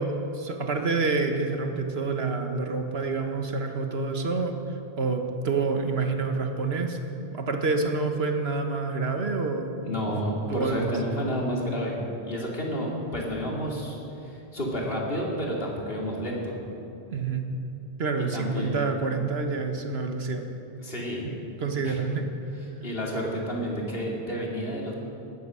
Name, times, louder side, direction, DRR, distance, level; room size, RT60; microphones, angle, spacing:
voice 1, 0.0-4.6 4.9-7.0 7.3-10.1 10.5-11.0 17.1-17.5 18.0-20.5 21.2-22.3, right 4 dB, 75° right, 5 dB, 1.6 m, -28 dB
voice 2, 9.8-12.0 12.2-16.5 18.3-19.0 20.8-21.2 21.8-22.0 22.8-25.0, equal, 65° left, -2 dB, 3.0 m, -30 dB
19.0 x 9.3 x 7.7 m, 2.8 s
omnidirectional pair, 1.1 m